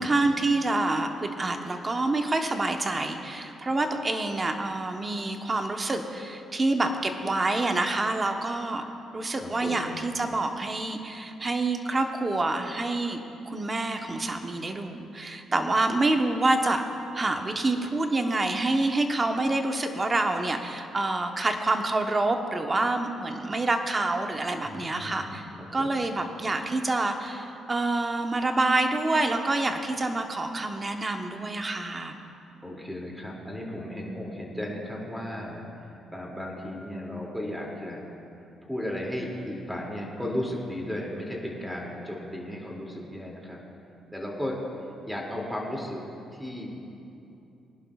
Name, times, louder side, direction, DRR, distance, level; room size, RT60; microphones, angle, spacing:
voice 1, 0.0-8.9 9.1-16.8 17.1-25.4 25.7-32.1, right 2 dB, 25° right, 5 dB, 1.0 m, -27 dB
voice 2, 9.4-9.9 24.6-26.1 32.6-38.1 38.6-43.6 44.1-44.6 45.0-46.0 46.3-46.8, left 1 dB, ahead, -2 dB, 2.5 m, -35 dB
21.0 x 11.0 x 2.4 m, 2.7 s
cardioid pair, 90°, 0 cm